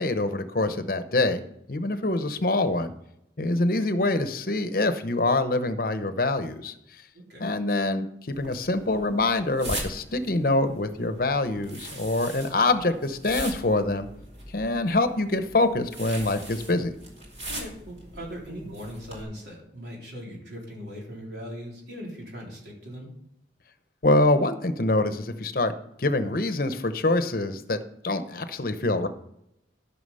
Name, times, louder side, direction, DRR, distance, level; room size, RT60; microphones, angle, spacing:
voice 1, 0.0-1.4 1.7-2.9 3.4-6.7 7.4-14.1 14.5-16.9 24.0-25.7 26.0-27.8 28.0-29.1, left 2 dB, 50° left, 10 dB, 0.8 m, -25 dB
sound 1, 8.3-19.2, right 1 dB, 35° right, 2.5 m, -41 dB
voice 2, 17.5-23.1, equal, 70° right, -2 dB, 3.8 m, -39 dB
13.0 x 5.9 x 5.5 m, 0.79 s
head